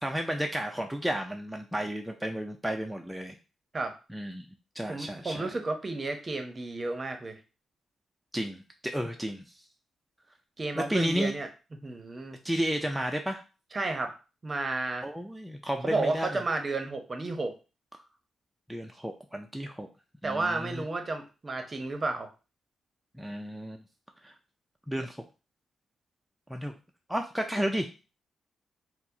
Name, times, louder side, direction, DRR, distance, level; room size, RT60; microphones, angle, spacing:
voice 1, 0.0-3.4 4.1-4.5 4.8-5.5 8.3-9.4 10.8-11.3 12.4-13.4 15.0-16.4 18.7-19.9 20.2-20.8 23.2-23.8 24.2-24.3 24.9-25.2 26.5-26.7 27.1-27.9, equal, 5° right, 3 dB, 0.4 m, -32 dB
voice 2, 4.9-7.4 10.6-11.5 11.8-12.4 13.7-14.1 14.4-15.0 15.8-17.5 20.2-22.3, right 3 dB, 35° right, 6 dB, 0.7 m, -32 dB
4.3 x 2.0 x 2.7 m, 0.32 s
cardioid pair, 65°, 0 cm